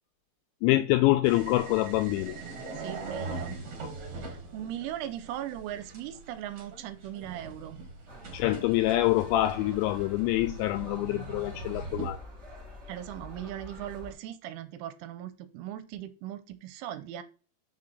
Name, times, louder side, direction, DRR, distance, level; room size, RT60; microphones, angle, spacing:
voice 1, 0.6-2.4 8.3-12.2, left 16 dB, 85° left, 2.6 m, -25 dB
sound 1, 1.2-12.1, right 3 dB, 50° right, 2.5 m, -41 dB
voice 2, 2.8-3.6 4.2-7.8 12.9-17.2, right 12 dB, 90° right, 3.2 m, -39 dB
sound 2, 8.1-14.1, left 1 dB, 70° right, 0.6 m, -47 dB
6.9 x 6.5 x 3.9 m
omnidirectional pair, 5.6 m